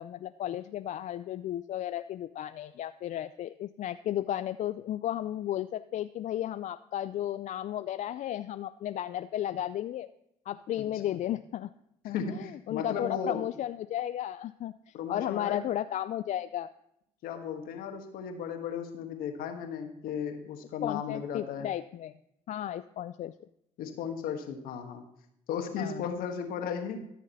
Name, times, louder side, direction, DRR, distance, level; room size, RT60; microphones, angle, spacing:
voice 1, 0.0-10.1 10.5-11.7 12.0-16.7 20.8-22.1 22.5-23.3 25.8-26.0, left 12 dB, 50° left, 12 dB, 0.4 m, -34 dB
voice 2, 12.1-13.4 14.9-15.6 17.2-21.7 23.8-25.0 25.5-27.0, left 7 dB, 70° left, 5 dB, 1.5 m, -35 dB
13.5 x 6.4 x 4.2 m, 0.79 s
supercardioid pair, 65°, 15 cm